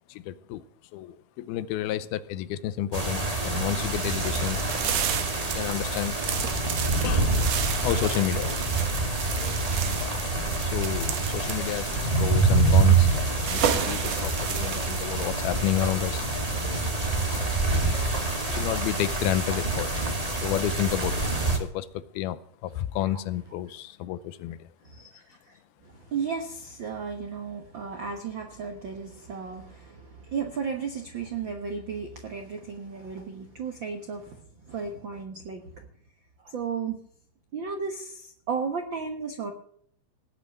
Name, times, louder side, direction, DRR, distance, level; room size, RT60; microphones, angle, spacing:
voice 1, 0.1-0.6 0.9-4.6 5.4-6.2 7.0-7.4 7.8-8.8 10.6-16.3 18.5-20.0 20.4-24.7, left 12 dB, 85° left, 15 dB, 2.6 m, -31 dB
sound 1, 2.9-21.6, right 3 dB, 20° right, 1.1 m, -26 dB
sound 2, 3.7-16.0, right 8 dB, 65° right, 1.8 m, -33 dB
sound 3, 6.2-18.9, left 4 dB, 55° left, 1.6 m, -42 dB
voice 2, 24.8-25.6 25.8-34.4 34.7-35.9 36.4-37.0 37.5-39.5, right 5 dB, 85° right, 5 dB, 1.0 m, -34 dB
18.0 x 6.0 x 9.2 m, 0.63 s
omnidirectional pair, 4.4 m